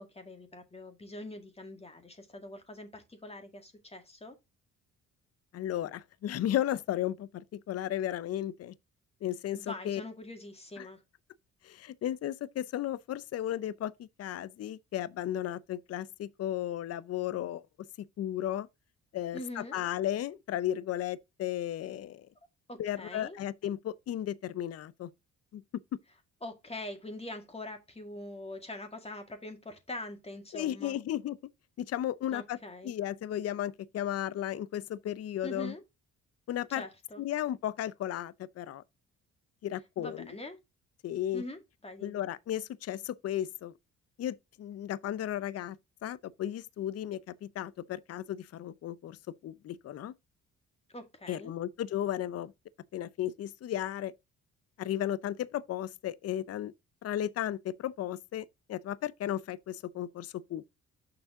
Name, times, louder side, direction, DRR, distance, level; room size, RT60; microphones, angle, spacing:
voice 1, 0.0-4.4 9.5-11.0 19.3-19.8 22.7-23.4 26.4-31.0 32.3-32.9 35.4-35.8 36.8-37.2 40.0-40.6 41.3-42.2 50.9-51.5, left 1 dB, 20° left, 1.9 m, -43 dB
voice 2, 5.5-8.7 9.2-10.0 10.8-10.9 11.6-17.6 18.0-18.7 19.1-22.3 22.8-25.1 25.5-25.6 30.5-31.4 31.8-32.6 32.8-35.7 36.5-36.8 37.2-38.8 39.6-40.3 41.0-41.4 42.0-43.7 44.2-45.8 46.0-50.1 51.3-52.5 52.9-54.1 54.8-56.7 57.0-60.6, left 11 dB, 55° left, 0.6 m, -34 dB
6.8 x 5.4 x 3.7 m
cardioid pair, 90°, 30 cm